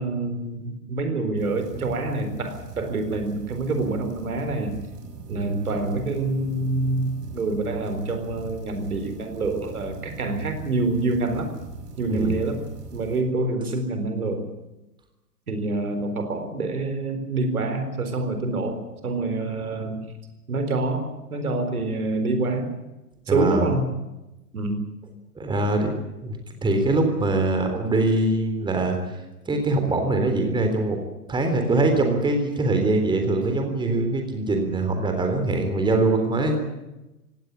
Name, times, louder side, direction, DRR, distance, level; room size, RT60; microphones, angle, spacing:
voice 1, 0.0-4.8 5.3-11.5 12.0-12.7 12.9-14.5 15.5-20.0 20.5-22.7 23.3-23.9 24.5-24.8, right 2 dB, 70° right, 8 dB, 4.2 m, -26 dB
sound 1, 1.4-13.2, right 4 dB, 30° right, 6.0 m, -40 dB
voice 2, 23.3-23.7 25.4-25.9 26.2-29.0 29.5-31.0 31.3-36.6, right 2 dB, 10° right, 5 dB, 3.6 m, -23 dB
18.5 x 17.5 x 9.9 m, 0.99 s
figure-of-eight pair, 105°, 46 cm